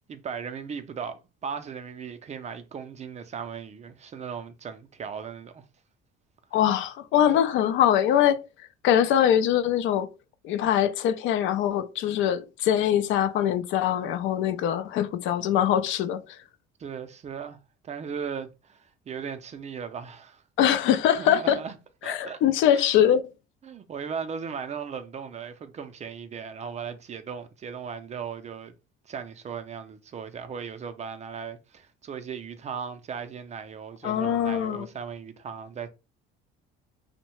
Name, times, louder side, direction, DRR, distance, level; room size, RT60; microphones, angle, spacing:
voice 1, 0.1-5.6 7.3-7.5 16.8-17.6 17.8-20.4 21.2-21.8 22.0-22.4 22.7-22.9 23.6-28.8 29.1-35.9, right 6 dB, 35° right, 0.4 m, -37 dB
voice 2, 6.5-8.4 8.8-10.1 10.4-16.2 20.6-21.6 22.0-23.2 34.0-34.9, left 10 dB, 65° left, 0.4 m, -23 dB
2.6 x 2.1 x 3.0 m
cardioid pair, 105°, 21 cm